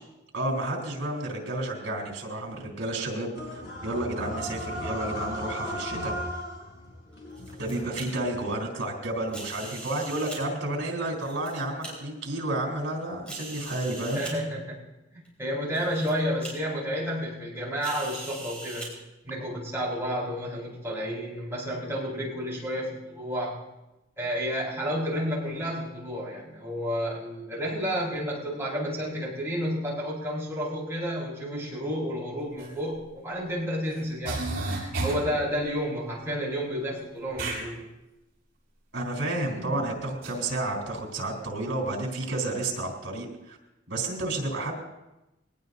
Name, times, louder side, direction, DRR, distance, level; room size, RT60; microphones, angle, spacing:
voice 1, 0.3-6.4 7.6-14.2 38.9-43.6 43.9-44.7, right 2 dB, 75° right, 0 dB, 3.8 m, -31 dB
sound 1, 3.3-8.5, equal, 60° left, 4.0 m, -36 dB
sound 2, 7.1-8.0 9.3-10.4 11.1-11.9 12.6-12.7 13.3-14.3 15.2-15.3 15.7-16.1 16.4-16.5 17.8-18.9, right 2 dB, 5° left, 4.5 m, -41 dB
voice 2, 14.1-14.8 15.1-18.9 19.2-23.6 24.2-34.4 35.0-37.8 39.5-39.8, equal, 15° right, -7 dB, 5.1 m, -31 dB
sound 3, 32.6-32.7 33.9-34.0 34.2-35.3 37.3-37.6 40.2-40.3, right 2 dB, 50° right, 6.8 m, -31 dB
22.0 x 18.0 x 2.7 m, 0.97 s
head